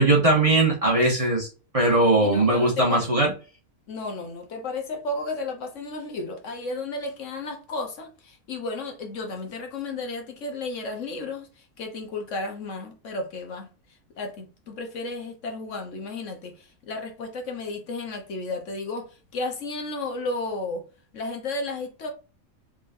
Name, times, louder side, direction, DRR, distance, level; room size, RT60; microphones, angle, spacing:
voice 1, 0.0-1.5 1.7-3.3, right 2 dB, 25° right, 1.2 m, -20 dB
voice 2, 2.2-3.0 3.9-13.7 14.2-20.8 21.1-22.1, left 3 dB, 65° left, 1.1 m, -33 dB
3.9 x 3.5 x 2.5 m
omnidirectional pair, 1.4 m